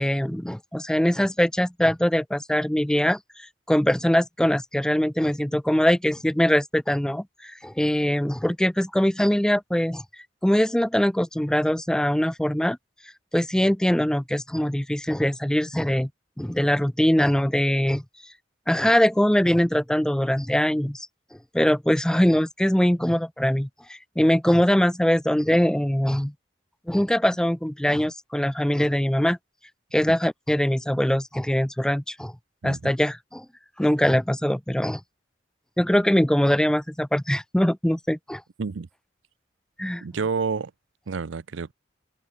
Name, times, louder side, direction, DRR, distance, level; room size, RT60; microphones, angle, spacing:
voice 1, 0.0-10.0 10.4-12.8 13.3-16.1 16.4-18.0 18.7-21.1 21.5-26.3 26.9-29.4 29.9-32.3 32.6-33.5 33.8-35.0 35.8-38.4 39.8-40.0, equal, 5° left, 0.4 m, -22 dB
voice 2, 32.6-32.9 38.6-38.9 40.0-40.7 41.1-41.7, right 5 dB, 90° right, 0.6 m, -29 dB
head